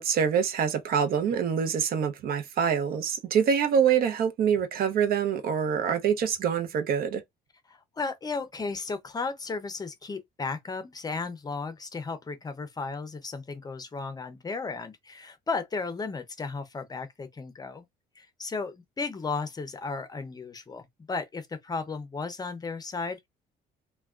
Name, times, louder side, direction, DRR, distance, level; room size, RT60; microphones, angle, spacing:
voice 1, 0.0-7.2, right 7 dB, 60° right, 0.7 m, -25 dB
voice 2, 7.7-17.9 18.2-23.3, left 4 dB, 25° left, 0.6 m, -34 dB
3.3 x 2.2 x 2.4 m
cardioid pair, 110°, 17 cm